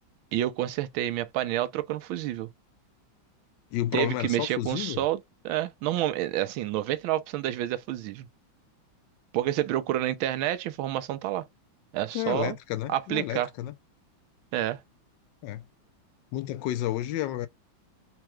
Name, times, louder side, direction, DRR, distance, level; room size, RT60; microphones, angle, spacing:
voice 1, 0.3-2.5 3.9-8.3 9.3-11.5 11.9-12.6 12.9-13.5 14.5-14.8, right 13 dB, 90° right, 1.4 m, -29 dB
voice 2, 3.7-5.0 12.1-13.7 15.4-15.6 16.3-17.5, left 13 dB, 75° left, 1.1 m, -31 dB
4.5 x 2.3 x 3.0 m
omnidirectional pair, 2.1 m